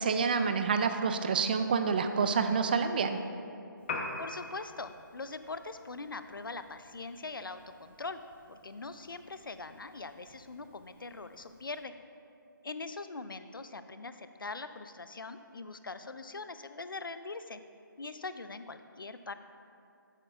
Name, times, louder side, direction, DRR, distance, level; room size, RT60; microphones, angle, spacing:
voice 1, 0.0-3.2, right 5 dB, 25° right, 8 dB, 0.3 m, -28 dB
Piano, 3.8-11.8, left 3 dB, 30° left, 0.8 m, -46 dB
voice 2, 4.2-8.2 8.5-11.9 12.6-17.6 18.0-19.3, left 3 dB, 80° left, 11 dB, 0.5 m, -42 dB
13.0 x 8.0 x 2.4 m, 2.5 s
figure-of-eight pair, 150°, 11 cm